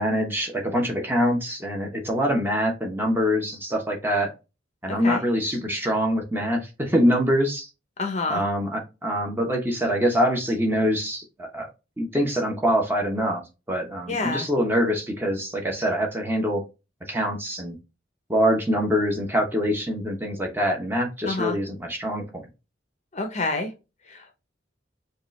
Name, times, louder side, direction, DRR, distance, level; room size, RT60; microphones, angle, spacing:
voice 1, 0.0-4.3 4.8-7.7 8.3-11.7 12.0-13.4 13.7-16.6 17.1-17.8 18.3-22.4, equal, 10° right, 1 dB, 0.9 m, -24 dB
voice 2, 4.9-5.2 8.0-8.4 14.1-14.5 21.2-21.6 23.1-23.7 24.1-24.2, left 3 dB, 35° left, 5 dB, 0.7 m, -28 dB
5.1 x 2.4 x 3.1 m, 0.28 s
head